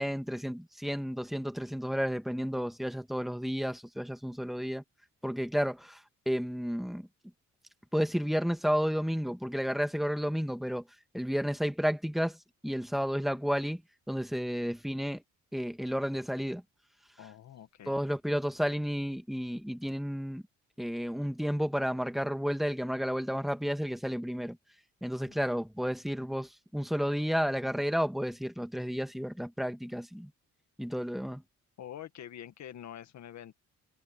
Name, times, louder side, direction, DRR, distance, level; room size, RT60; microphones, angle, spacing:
voice 1, 0.0-4.8 5.2-7.1 7.9-10.8 11.1-12.4 12.6-13.8 14.1-15.2 15.5-16.6 17.9-20.4 20.8-24.6 25.0-30.3 30.8-31.4, equal, ahead, 1.9 m, -32 dB
voice 2, 17.2-18.0 25.2-25.4 31.8-33.5, left 10 dB, 65° left, 1.9 m, -46 dB
cardioid pair, 90°, 30 cm